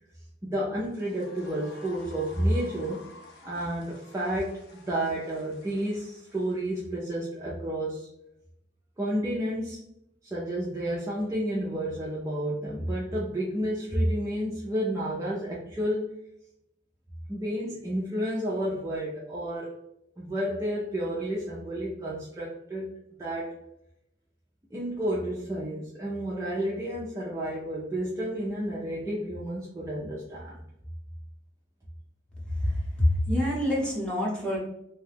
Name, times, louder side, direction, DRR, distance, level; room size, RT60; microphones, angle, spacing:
voice 1, 0.4-3.1 3.4-8.1 9.0-9.8 10.2-16.2 17.3-19.8 20.2-23.6 24.7-30.6, right 1 dB, 15° right, -6 dB, 0.5 m, -31 dB
sound 1, 0.8-7.1, left 3 dB, 65° left, 0.8 m, -52 dB
voice 2, 32.5-34.6, left 1 dB, 5° left, -6 dB, 1.0 m, -26 dB
2.8 x 2.2 x 3.3 m, 0.79 s
head